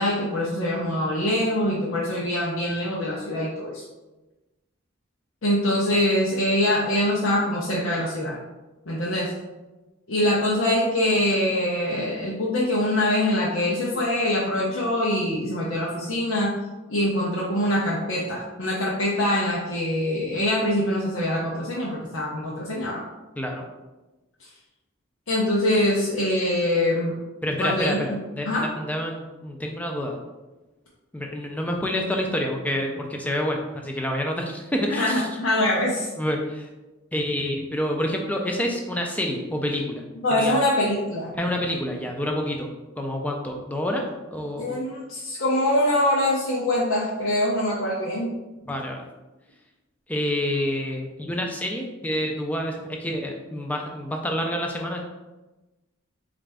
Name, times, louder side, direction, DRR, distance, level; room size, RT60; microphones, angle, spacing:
voice 1, 0.0-3.8 5.4-8.4 8.9-9.3 10.1-16.5 16.9-23.0 25.3-27.1 27.6-28.2 28.4-28.6 34.9-36.1 40.2-41.3 44.6-48.4, left 1 dB, 75° left, -6 dB, 0.7 m, -24 dB
voice 2, 23.4-23.7 27.4-30.2 31.1-35.3 36.2-36.7 37.1-40.0 40.3-40.6 41.4-42.7 43.0-44.0 44.3-44.8 48.7-49.0 50.1-55.0, equal, 5° left, 1 dB, 0.4 m, -28 dB
4.1 x 2.5 x 3.4 m, 1.1 s
head